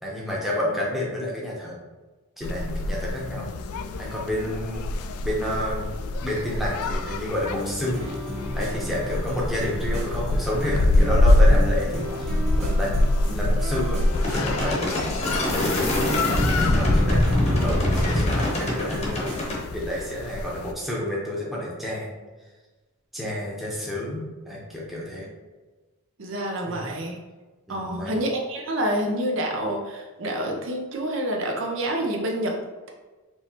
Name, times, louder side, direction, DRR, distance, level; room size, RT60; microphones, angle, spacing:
voice 1, 0.0-1.8 2.4-3.5 4.0-4.8 5.2-5.9 6.2-8.0 8.5-14.0 14.3-15.1 15.5-17.2 17.6-19.3 19.7-22.1 23.1-25.3 26.7-26.9 27.7-28.1, left 1 dB, ahead, -5 dB, 0.8 m, -30 dB
sound 1, 2.4-20.7, left 1 dB, 80° left, 0.3 m, -25 dB
sound 2, 7.3-19.4, equal, 30° right, 1.0 m, -35 dB
sound 3, 14.1-19.6, left 1 dB, 30° left, 0.9 m, -24 dB
voice 2, 26.2-27.2 27.7-32.5, right 1 dB, 55° right, 1 dB, 0.5 m, -27 dB
4.6 x 3.1 x 2.8 m, 1.2 s
head